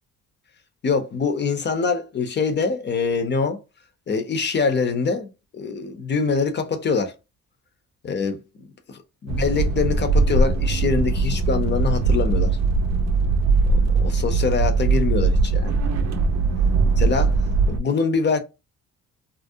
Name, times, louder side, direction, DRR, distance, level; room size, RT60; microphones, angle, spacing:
voice 1, 0.8-3.6 4.1-7.1 8.0-12.5 13.6-15.8 17.0-17.4 17.7-18.4, left 5 dB, 35° left, 0.6 m, -24 dB
sound 1, 9.3-17.8, right 3 dB, 60° right, 0.5 m, -20 dB
2.4 x 2.0 x 2.6 m
cardioid pair, 90°, 30 cm